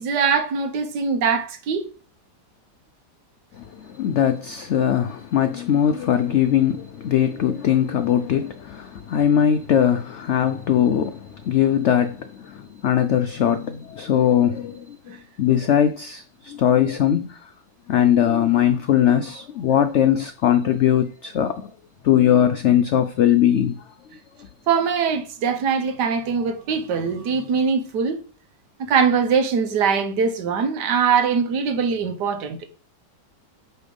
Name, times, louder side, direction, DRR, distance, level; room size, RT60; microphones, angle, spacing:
voice 1, 0.0-1.8 15.1-15.2 24.7-28.2 28.9-32.7, right 6 dB, 75° right, 1.5 m, -22 dB
voice 2, 3.6-15.0 15.4-17.4 17.9-21.6 22.0-23.7, left 10 dB, 80° left, 0.6 m, -20 dB
8.1 x 3.4 x 5.3 m
omnidirectional pair, 1.8 m